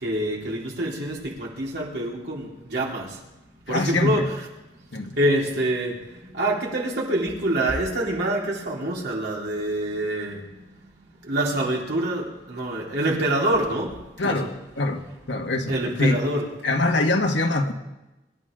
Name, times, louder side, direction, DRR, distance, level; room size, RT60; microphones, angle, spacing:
voice 1, 0.0-3.1 3.7-4.5 5.2-5.9 6.3-10.4 11.3-13.9 14.2-14.5 15.7-16.4, right 1 dB, 65° right, -3 dB, 3.9 m, -26 dB
voice 2, 3.7-4.3 4.9-5.2 14.2-14.5 14.8-16.2 16.6-17.7, left 2 dB, 75° left, 3 dB, 1.7 m, -23 dB
25.0 x 12.5 x 3.8 m, 1.0 s
head